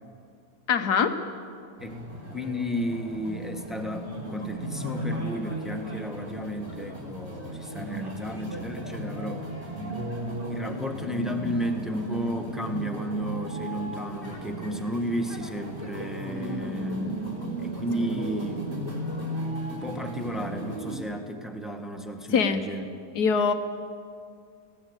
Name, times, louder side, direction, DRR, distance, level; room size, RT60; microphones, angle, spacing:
voice 1, 0.7-1.2 22.3-22.6 23.1-23.5, left 6 dB, 70° left, 8 dB, 1.6 m, -23 dB
sound 1, 1.8-21.0, right 1 dB, 35° right, 3.9 m, -35 dB
voice 2, 2.3-9.5 10.5-18.7 19.7-22.9, equal, ahead, 3 dB, 1.3 m, -33 dB
19.0 x 17.0 x 8.1 m, 2.3 s
omnidirectional pair, 1.8 m